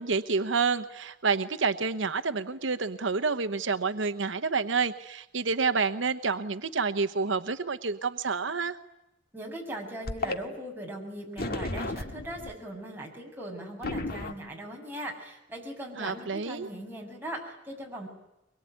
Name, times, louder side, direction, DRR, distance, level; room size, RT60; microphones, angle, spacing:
voice 1, 0.0-8.8 16.0-16.7, right 4 dB, 80° right, 10 dB, 1.0 m, -28 dB
voice 2, 9.3-18.1, right 1 dB, 10° right, -1 dB, 7.1 m, -39 dB
sound 1, 10.1-10.4 11.4-12.5 13.8-14.3, left 2 dB, 55° left, 1.9 m, -33 dB
24.0 x 22.5 x 9.5 m, 0.92 s
head